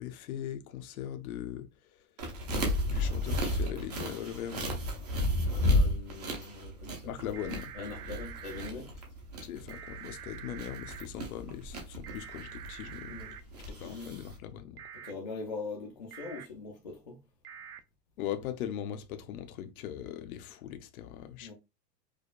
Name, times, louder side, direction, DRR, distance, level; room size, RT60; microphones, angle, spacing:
voice 1, 0.0-1.7 1.9-2.0 2.9-4.8 7.0-7.7 9.4-13.2 13.8-14.8 18.2-21.5, left 10 dB, 65° left, 0.7 m, -40 dB
sound 1, 2.2-14.4, left 1 dB, 25° right, 0.5 m, -33 dB
voice 2, 5.3-7.4 7.7-8.9 13.1-14.2 14.9-17.2 21.4-21.5, left 4 dB, 30° left, 0.4 m, -42 dB
sound 2, 7.3-8.7 9.7-11.1 12.0-13.4 14.8-15.1 16.1-16.5 17.4-17.8, right 9 dB, 75° right, 0.7 m, -46 dB
4.9 x 2.2 x 2.4 m
supercardioid pair, 180°, 47 cm